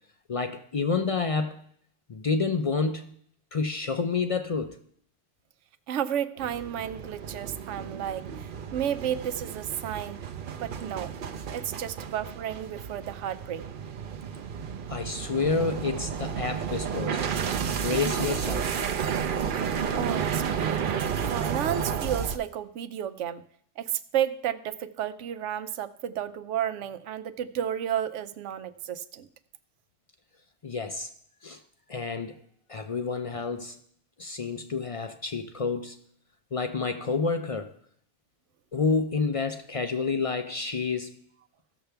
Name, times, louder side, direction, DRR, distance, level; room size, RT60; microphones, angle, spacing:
voice 1, 0.3-1.6 2.1-3.2 3.5-4.8 14.9-17.3 17.7-18.7 30.6-31.1 31.4-31.6 31.9-32.4 32.7-33.8 34.2-36.0 36.5-37.8 38.7-41.2, left 4 dB, 50° left, 0.4 m, -29 dB
voice 2, 5.9-10.2 10.6-11.1 11.5-13.7 20.0-20.8 21.3-23.4 23.8-29.3, right 10 dB, 80° right, 0.9 m, -32 dB
sound 1, 6.4-22.4, right 7 dB, 55° right, 0.7 m, -32 dB
15.5 x 6.7 x 3.4 m
omnidirectional pair, 1.2 m